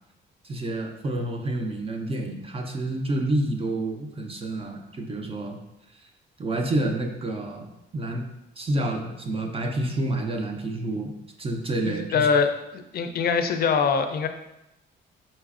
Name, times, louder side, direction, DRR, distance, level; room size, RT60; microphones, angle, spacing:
voice 1, 0.4-5.6 6.4-8.3 8.6-11.1 11.4-12.3, right 1 dB, 30° right, 2 dB, 0.6 m, -29 dB
voice 2, 11.8-14.3, left 5 dB, 50° left, 7 dB, 0.5 m, -23 dB
4.1 x 3.8 x 2.4 m, 0.89 s
cardioid pair, 90°, 20 cm